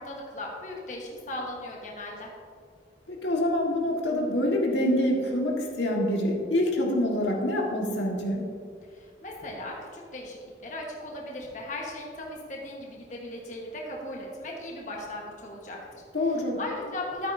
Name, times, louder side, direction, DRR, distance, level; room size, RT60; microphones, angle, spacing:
voice 1, 0.0-2.3 8.9-10.4 10.6-16.0 16.6-17.3, left 1 dB, 45° left, -2 dB, 1.3 m, -37 dB
voice 2, 3.1-8.4 16.1-16.6, left 1 dB, 85° left, -1 dB, 1.6 m, -26 dB
12.5 x 8.9 x 2.7 m, 2.1 s
head